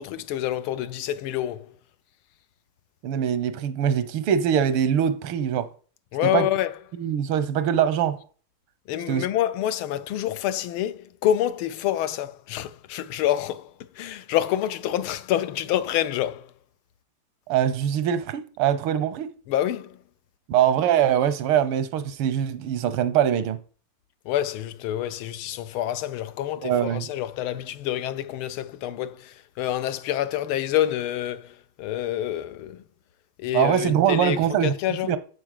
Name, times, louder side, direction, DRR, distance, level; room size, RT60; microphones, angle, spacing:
voice 1, 0.0-1.7 6.1-6.7 8.9-16.5 19.5-20.0 24.2-32.8 33.4-35.1, left 12 dB, 80° left, 1.6 m, -27 dB
voice 2, 3.0-5.7 6.2-6.5 7.0-8.2 9.1-9.3 17.5-19.3 20.5-23.6 26.6-27.1 33.5-35.2, right 9 dB, 85° right, 1.7 m, -23 dB
7.8 x 7.5 x 6.5 m
omnidirectional pair, 2.3 m